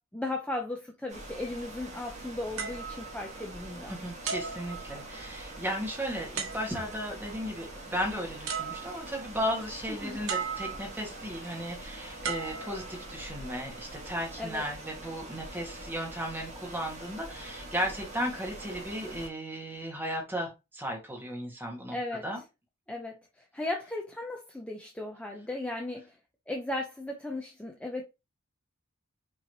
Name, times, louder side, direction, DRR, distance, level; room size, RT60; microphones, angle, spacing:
voice 1, 0.1-3.9 10.0-10.2 14.4-14.6 21.9-22.2 22.9-23.2 23.5-26.1 26.5-28.0, left 2 dB, 5° left, 0.5 m, -36 dB
sound 1, 1.1-19.3, right 2 dB, 35° right, 1.6 m, -44 dB
sound 2, 2.6-3.8 4.3-5.4 6.4-7.1 8.1-8.2 8.5-9.3 10.3-11.1 12.2-13.4 14.1-14.3, right 6 dB, 70° right, 1.0 m, -37 dB
voice 2, 3.9-22.0 22.2-22.4, equal, 10° right, 1.5 m, -35 dB
5.4 x 3.1 x 2.8 m
head